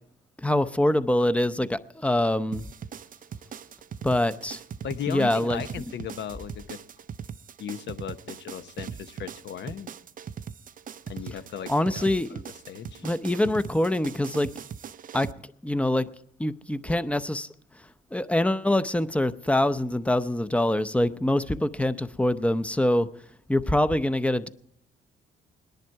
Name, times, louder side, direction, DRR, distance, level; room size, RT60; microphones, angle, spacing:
voice 1, 0.4-2.7 4.0-4.6 5.1-5.6 11.7-12.4 13.0-14.5 15.1-15.3 15.6-16.1 16.4-17.5 18.1-23.1 23.5-24.5, left 1 dB, 5° left, 0.7 m, -24 dB
sound 1, 2.5-15.3, right 7 dB, 45° right, 0.5 m, -40 dB
voice 2, 4.8-6.8 7.6-9.9 11.1-12.0 12.3-12.4 12.7-13.1, left 8 dB, 60° left, 0.9 m, -36 dB
19.5 x 10.5 x 4.6 m
cardioid pair, 90°, 20 cm